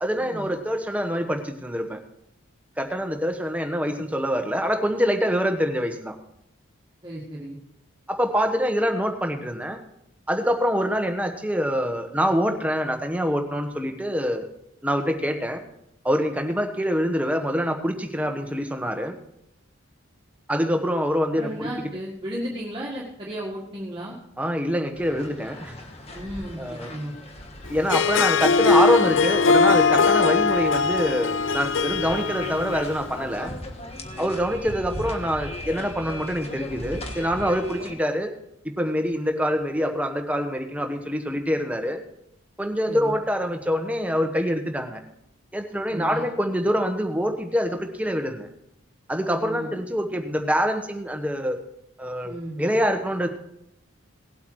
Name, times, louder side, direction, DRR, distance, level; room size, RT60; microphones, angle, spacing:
voice 1, 0.0-2.0 2.8-6.2 8.1-9.8 10.3-14.5 14.8-15.6 16.0-19.1 20.5-21.9 24.4-25.7 26.6-26.9 27.7-33.5 34.2-38.3 38.8-42.0 42.6-45.0 45.5-48.5 49.1-51.6 52.0-53.3, equal, 5° right, 4 dB, 1.2 m, -25 dB
voice 2, 7.0-7.6 21.4-24.2 26.1-27.1 42.9-43.1 45.9-46.2 49.4-49.7 52.2-52.6, equal, 25° right, -4 dB, 1.8 m, -34 dB
sound 1, 24.9-37.9, left 1 dB, 30° left, 1.5 m, -38 dB
Harp, 27.8-33.2, left 4 dB, 65° left, 0.5 m, -21 dB
18.0 x 8.2 x 4.7 m, 0.80 s
head